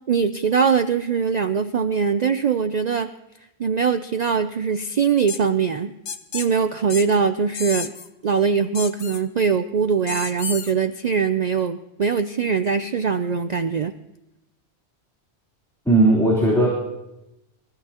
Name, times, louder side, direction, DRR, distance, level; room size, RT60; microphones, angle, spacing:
voice 1, 0.1-3.1 3.6-5.9 6.3-7.9 8.2-13.9, right 6 dB, 50° right, 9 dB, 0.5 m, -22 dB
sound 1, 5.3-5.4 6.1-6.5 6.9-7.1 7.5-8.1 8.7-9.2 10.1-10.7, left 6 dB, 80° left, 1.2 m, -31 dB
voice 2, 15.9-16.7, right 2 dB, 5° left, -6 dB, 3.5 m, -16 dB
24.0 x 14.0 x 2.9 m, 0.92 s
omnidirectional pair, 1.1 m